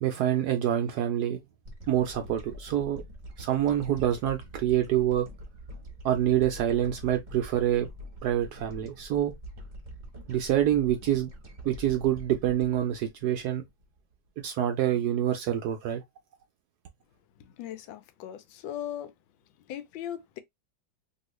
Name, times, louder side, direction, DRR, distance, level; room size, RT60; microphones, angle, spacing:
voice 1, 0.0-1.4 1.9-3.0 3.4-5.3 6.0-7.9 8.2-9.3 10.3-11.3 11.6-13.6 14.4-16.0, right 11 dB, 75° right, 0.9 m, -26 dB
sound 1, 1.6-14.1, equal, 35° right, 0.7 m, -45 dB
voice 2, 17.4-19.1 19.7-20.4, left 11 dB, 80° left, 1.3 m, -38 dB
3.0 x 2.8 x 3.0 m
omnidirectional pair, 2.2 m